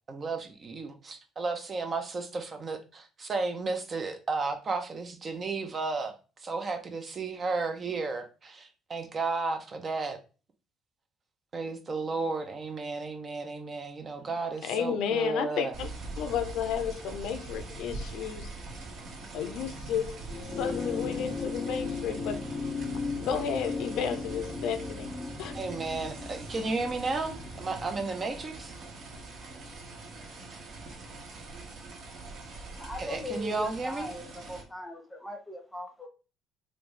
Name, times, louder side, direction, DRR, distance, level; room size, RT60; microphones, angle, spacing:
voice 1, 0.1-10.2 11.5-15.7 25.5-28.7 33.0-34.1, right 3 dB, 35° right, 0.6 m, -33 dB
voice 2, 14.6-15.9 16.2-18.5 19.3-20.2 20.6-22.4 23.2-25.1 25.4-25.5, left 8 dB, 75° left, 0.5 m, -32 dB
sound 1, 15.7-34.6, right 3 dB, 60° right, 1.1 m, -43 dB
sound 2, 20.2-28.9 30.1-30.2, left 4 dB, 25° left, 0.5 m, -37 dB
sound 3, 20.4-28.0, equal, 85° right, 1.0 m, -47 dB
voice 3, 32.8-36.1, left 1 dB, 10° left, 0.9 m, -39 dB
3.3 x 2.6 x 3.2 m
cardioid pair, 105°, 0 cm